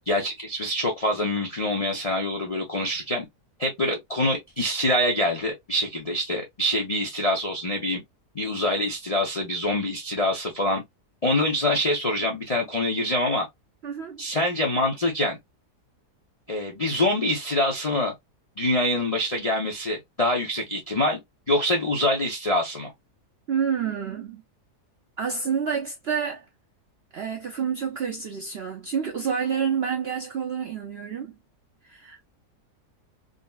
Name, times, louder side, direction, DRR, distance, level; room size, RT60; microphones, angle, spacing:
voice 1, 0.1-3.3 3.6-8.0 8.3-10.8 11.2-13.5 14.2-15.4 16.5-18.1 18.6-21.2 21.5-22.9, left 1 dB, 45° left, 0.4 m, -25 dB
voice 2, 13.8-14.2 23.5-24.4 25.2-26.5 27.1-31.4 31.8-32.2, right 7 dB, 60° right, 0.6 m, -28 dB
3.9 x 2.1 x 2.2 m
omnidirectional pair, 1.7 m